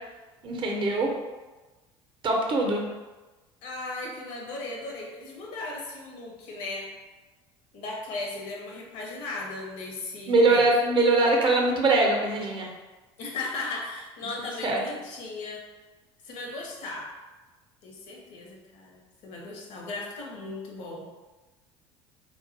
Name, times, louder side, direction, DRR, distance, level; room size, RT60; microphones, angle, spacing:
voice 1, 0.4-1.1 2.2-2.9 10.3-12.7 14.6-14.8, right 2 dB, 35° right, 1 dB, 0.5 m, -22 dB
voice 2, 3.6-6.9 7.7-10.6 13.2-15.6 16.2-17.1 17.8-21.1, left 3 dB, 60° left, -1 dB, 0.6 m, -37 dB
2.3 x 2.1 x 2.5 m, 1.2 s
hypercardioid pair, 75°, 14 cm